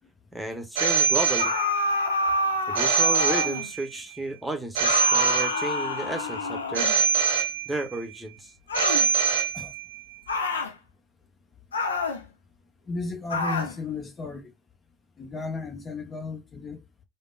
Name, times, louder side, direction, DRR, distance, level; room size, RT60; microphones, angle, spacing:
voice 1, 0.3-1.5 2.7-6.9 7.7-8.5, right 2 dB, 5° right, 0.9 m, -33 dB
Telephone, 0.8-2.0 2.7-4.0 4.7-6.0 6.7-8.0 8.7-10.0, right 6 dB, 80° right, 0.5 m, -24 dB
sound 1, 1.4-3.7 4.8-7.1 8.7-9.1 10.3-10.7 11.7-12.2 13.3-13.8, left 2 dB, 90° left, 0.4 m, -28 dB
voice 2, 12.9-14.5 15.2-16.8, left 3 dB, 35° left, 0.8 m, -34 dB
3.4 x 2.1 x 2.3 m
hypercardioid pair, 60°, 0 cm